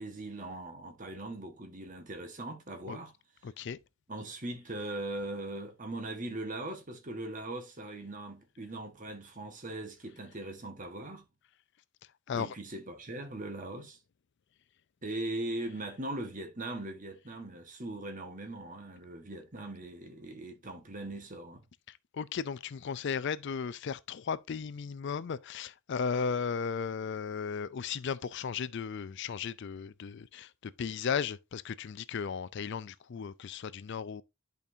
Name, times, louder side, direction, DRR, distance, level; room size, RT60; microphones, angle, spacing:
voice 1, 0.0-3.1 4.1-11.3 12.3-14.0 15.0-21.6, right 2 dB, 40° right, 1.4 m, -40 dB
voice 2, 3.4-3.8 12.3-12.5 22.1-34.2, left 6 dB, 55° left, 0.4 m, -35 dB
11.0 x 5.2 x 2.7 m
head